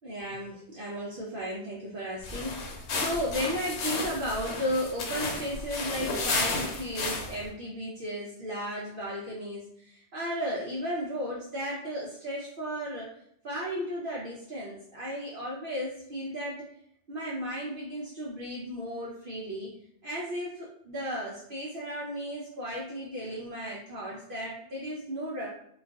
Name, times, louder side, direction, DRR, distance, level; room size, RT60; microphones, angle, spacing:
voice 1, 0.0-13.1 13.4-16.7 17.1-19.7 20.0-25.5, equal, 55° right, -5 dB, 0.7 m, -35 dB
sound 1, 2.2-7.5, left 3 dB, 75° left, 0.9 m, -33 dB
2.4 x 2.3 x 3.4 m, 0.71 s
omnidirectional pair, 1.2 m